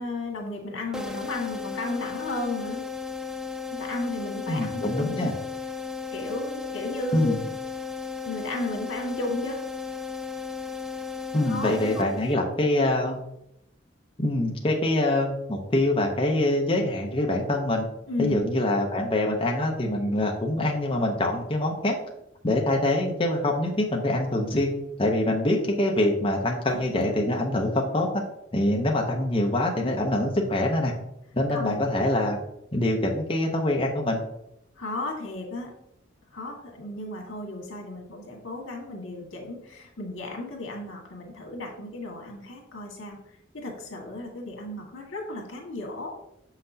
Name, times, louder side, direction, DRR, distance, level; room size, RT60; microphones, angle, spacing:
voice 1, 0.0-2.8 3.7-5.3 6.1-7.5 8.2-9.6 11.5-12.0 18.1-18.4 26.7-26.8 31.5-31.8 34.8-35.7 36.3-43.2 43.5-46.2, left 2 dB, 85° left, 1 dB, 1.7 m, -34 dB
sound 1, 0.9-12.6, left 5 dB, 5° right, 0.3 m, -35 dB
voice 2, 4.5-5.3 7.1-7.4 11.3-13.2 14.2-17.9 18.2-21.9 22.4-24.7 25.0-28.2 28.5-30.9 31.3-32.4 32.7-34.2, left 1 dB, 25° left, 0 dB, 0.7 m, -24 dB
6.5 x 5.8 x 2.7 m, 0.79 s
head